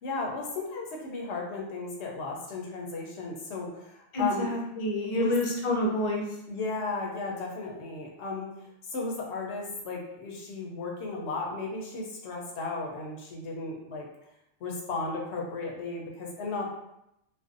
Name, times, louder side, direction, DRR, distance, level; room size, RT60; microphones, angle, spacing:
voice 1, 0.0-4.5 5.1-5.3 6.5-8.5 8.9-14.1 14.6-16.7, left 3 dB, 85° left, -1 dB, 0.9 m, -35 dB
voice 2, 4.1-6.2, left 1 dB, 45° left, -2 dB, 0.4 m, -28 dB
2.5 x 2.1 x 2.4 m, 0.83 s
omnidirectional pair, 1.1 m